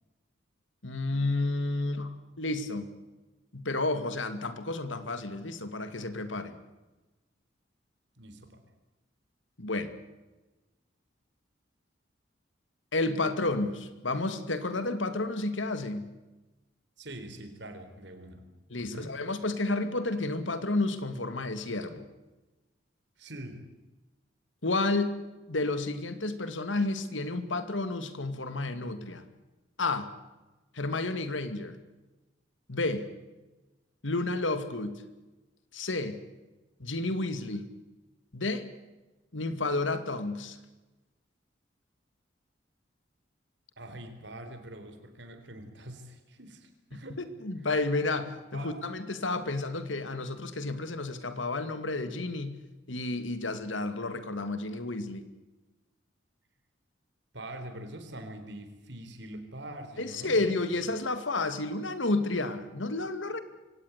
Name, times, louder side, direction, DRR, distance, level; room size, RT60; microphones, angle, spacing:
voice 1, 0.8-2.9 3.5-6.6 9.6-9.9 12.9-16.1 18.7-22.1 24.6-25.2 25.5-29.2 29.8-30.1 30.7-31.8 32.7-33.1 34.0-35.0 35.7-36.2 36.8-37.6 38.3-38.7 39.3-40.6 47.2-52.6 52.9-55.2 60.0-63.4, left 2 dB, 90° left, 10 dB, 2.4 m, -31 dB
voice 2, 8.2-8.6 17.0-18.4 18.8-19.2 23.2-23.7 43.8-47.2 48.5-48.8 57.3-60.5, right 1 dB, 70° right, 8 dB, 4.0 m, -44 dB
24.0 x 18.0 x 8.3 m, 1.1 s
head